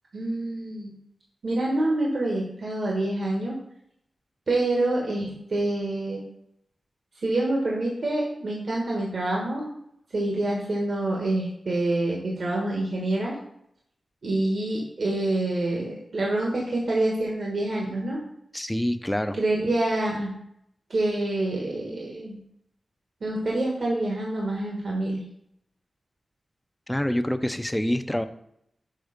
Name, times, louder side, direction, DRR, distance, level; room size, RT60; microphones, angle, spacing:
voice 1, 0.1-0.9 1.4-3.6 4.5-6.2 7.2-9.7 10.1-13.4 14.2-18.2 19.4-20.3 20.9-22.4 23.2-25.2, right 2 dB, 70° right, -2 dB, 1.4 m, -26 dB
voice 2, 18.5-19.4 26.9-28.2, left 1 dB, 10° left, 10 dB, 0.6 m, -26 dB
6.4 x 3.9 x 5.1 m, 0.75 s
cardioid pair, 45°, 0 cm